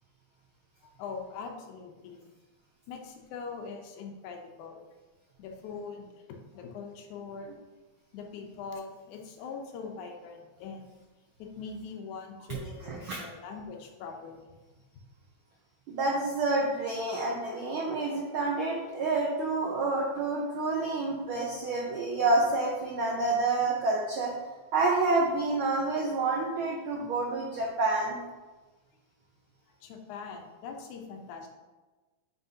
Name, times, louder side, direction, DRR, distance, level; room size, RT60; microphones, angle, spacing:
voice 1, 0.8-2.2 2.9-4.8 5.4-6.2 6.5-7.6 8.1-10.9 11.4-14.4 29.8-31.5, left 5 dB, 90° left, 3 dB, 2.2 m, -42 dB
voice 2, 12.5-13.2 15.9-24.3 24.7-28.2, right 3 dB, 90° right, -2 dB, 1.1 m, -28 dB
8.0 x 5.2 x 2.8 m, 1.2 s
omnidirectional pair, 3.3 m